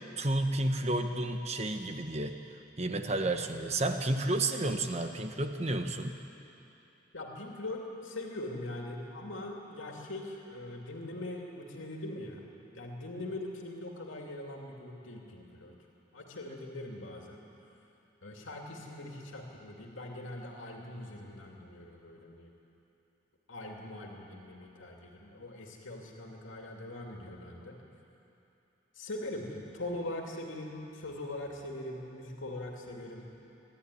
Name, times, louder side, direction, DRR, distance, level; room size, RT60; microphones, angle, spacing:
voice 1, 0.2-2.4 2.8-6.1, right 2 dB, 35° right, 6 dB, 1.1 m, -31 dB
voice 2, 3.1-3.4 7.1-12.4 12.7-15.7 16.1-17.4 18.2-22.5 23.5-27.8 28.9-33.3, left 1 dB, 85° left, 0 dB, 2.7 m, -42 dB
26.0 x 12.5 x 9.8 m, 2.9 s
head